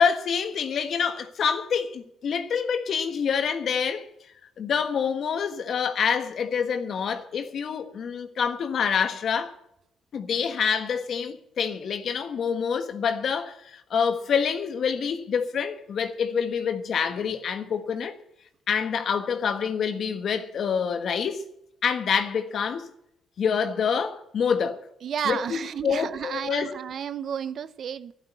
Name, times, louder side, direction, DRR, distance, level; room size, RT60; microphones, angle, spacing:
voice 1, 0.0-4.1 4.6-9.5 10.1-18.1 18.7-21.4 21.8-22.9 23.4-24.8 25.2-26.7, left 6 dB, 60° left, 1.4 m, -26 dB
voice 2, 25.0-28.1, right 8 dB, 60° right, 0.7 m, -32 dB
12.0 x 11.5 x 8.1 m
cardioid pair, 90°, 0 cm